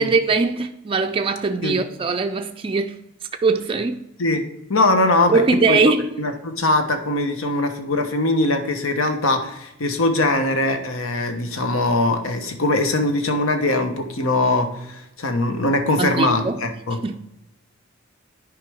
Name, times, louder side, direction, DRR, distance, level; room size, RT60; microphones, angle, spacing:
voice 1, 0.0-3.0 3.4-4.0 5.3-6.1 16.0-16.6 17.0-17.2, right 4 dB, 25° right, 0.3 m, -21 dB
voice 2, 4.7-5.4 5.7-5.8 6.2-17.0, left 2 dB, 80° left, 1.1 m, -21 dB
10.5 x 4.9 x 3.5 m
head